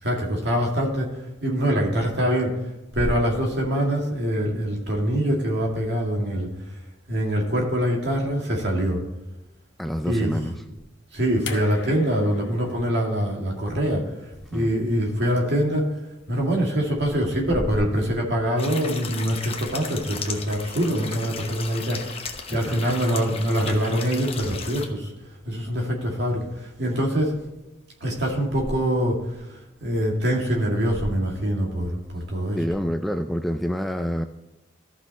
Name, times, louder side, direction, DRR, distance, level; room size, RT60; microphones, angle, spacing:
voice 1, 0.0-1.1 1.4-2.6 2.9-6.5 7.1-9.0 10.0-10.3 11.1-14.1 14.5-15.9 16.3-25.1 25.5-27.3 28.0-29.2 29.8-32.6, equal, 55° right, -1 dB, 2.2 m, -24 dB
voice 2, 9.8-10.6 14.5-14.7 22.5-23.1 32.5-34.2, equal, ahead, 6 dB, 0.3 m, -28 dB
sound 1, 11.5-14.6 15.8-15.9, left 5 dB, 60° left, 1.1 m, -40 dB
sound 2, 18.6-24.9, left 5 dB, 30° left, 0.9 m, -36 dB
14.0 x 5.9 x 4.1 m, 1.0 s
head